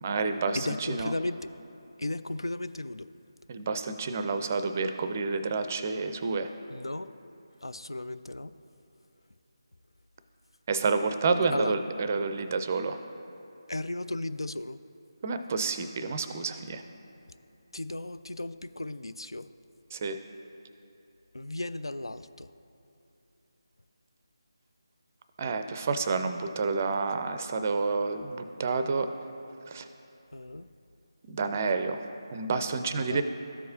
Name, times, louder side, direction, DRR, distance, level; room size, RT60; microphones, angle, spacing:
voice 1, 0.0-1.1 3.5-6.5 10.7-13.0 15.2-16.8 19.9-20.2 25.4-29.1 29.7-29.9 31.3-32.0 32.3-33.2, right 4 dB, 30° right, 9 dB, 0.4 m, -29 dB
voice 2, 0.5-1.4 2.0-3.1 6.7-7.1 7.6-8.5 11.5-11.7 13.7-14.8 17.7-19.5 21.3-22.5 30.3-30.7 32.9-33.2, left 2 dB, 90° left, 12 dB, 0.3 m, -35 dB
13.5 x 4.7 x 2.7 m, 2.8 s
figure-of-eight pair, 160°, 2 cm